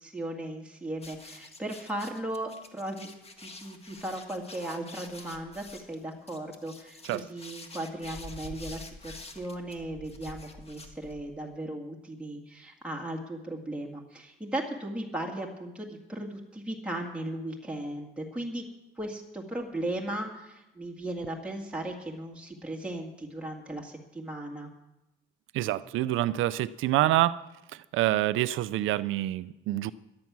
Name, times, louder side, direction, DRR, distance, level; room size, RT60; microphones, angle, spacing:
voice 1, 0.0-3.1 3.4-18.6 19.0-24.7, right 1 dB, 5° right, -1 dB, 2.0 m, -37 dB
sound 1, 1.0-11.4, left 2 dB, 30° left, 1.6 m, -47 dB
voice 2, 25.5-27.4 27.9-29.9, right 15 dB, 90° right, 16 dB, 0.5 m, -26 dB
13.5 x 10.5 x 6.1 m, 0.93 s
cardioid pair, 90°, 20 cm